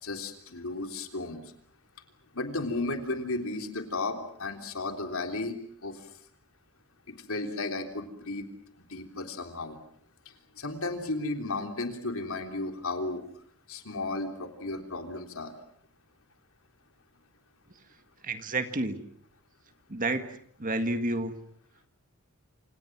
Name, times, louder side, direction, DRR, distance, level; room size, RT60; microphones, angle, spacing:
voice 1, 0.0-1.4 2.3-6.1 7.1-8.5 8.9-9.8 10.5-13.2 13.7-15.5, left 2 dB, 65° left, 5 dB, 3.5 m, -34 dB
voice 2, 18.2-19.0 19.9-20.3 20.6-21.3, right 2 dB, 40° right, 9 dB, 1.9 m, -29 dB
28.0 x 27.0 x 6.1 m, 0.63 s
head